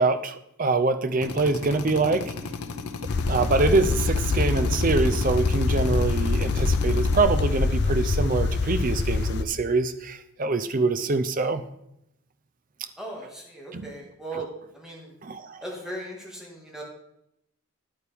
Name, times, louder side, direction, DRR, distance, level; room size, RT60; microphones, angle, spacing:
voice 1, 0.0-2.3 3.3-11.6 13.7-13.9 14.3-14.4 15.2-15.6, right 3 dB, 35° right, 11 dB, 0.5 m, -24 dB
Drill, 1.2-7.2, left 3 dB, 90° left, 0.8 m, -35 dB
sound 1, 3.1-9.4, left 3 dB, 50° left, 0.5 m, -24 dB
voice 2, 13.0-14.5 14.7-15.1 15.6-16.8, right 1 dB, ahead, -3 dB, 1.9 m, -38 dB
10.0 x 9.0 x 3.5 m, 0.79 s
head